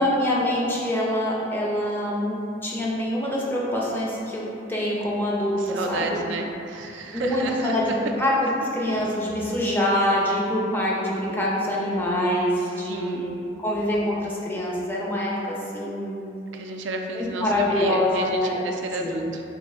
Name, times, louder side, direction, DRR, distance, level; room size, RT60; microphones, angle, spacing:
voice 1, 0.0-6.2 7.1-7.9 8.2-16.2 17.1-18.6 19.0-19.3, left 1 dB, 10° left, -5 dB, 0.5 m, -25 dB
voice 2, 5.6-8.0 12.6-13.2 16.5-19.4, right 3 dB, 70° right, 3 dB, 0.3 m, -32 dB
3.2 x 2.5 x 3.6 m, 2.7 s
head